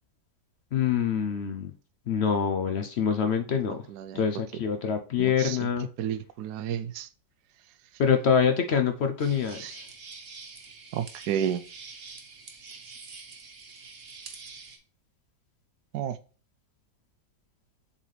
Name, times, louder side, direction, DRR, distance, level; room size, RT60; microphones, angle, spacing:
voice 1, 0.7-1.7 2.1-3.8 4.1-5.9 8.0-9.8, left 7 dB, 70° left, 6 dB, 0.6 m, -25 dB
voice 2, 3.9-4.2 5.2-5.6 6.0-7.1 9.6-9.7 10.9-11.6 15.9-16.2, right 9 dB, 75° right, 13 dB, 1.1 m, -31 dB
sound 1, 9.2-14.8, right 4 dB, 40° right, 1.0 m, -46 dB
7.4 x 4.1 x 3.2 m, 0.37 s
omnidirectional pair, 1.8 m